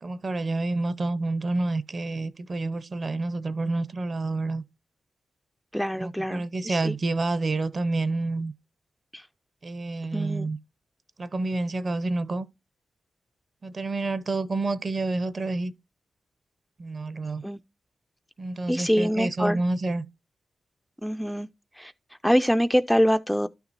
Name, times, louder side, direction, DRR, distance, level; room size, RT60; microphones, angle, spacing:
voice 1, 0.0-4.6 5.9-8.5 9.6-10.6 11.2-12.5 13.6-15.7 16.8-17.4 18.4-20.0, right 2 dB, 40° right, 0.7 m, -28 dB
voice 2, 5.7-6.9 9.1-9.3 10.1-10.5 17.4-17.6 18.7-19.6 21.0-21.5 21.8-21.9 22.2-23.5, equal, ahead, 0.4 m, -24 dB
12.0 x 5.8 x 2.6 m
cardioid pair, 95°, 0 cm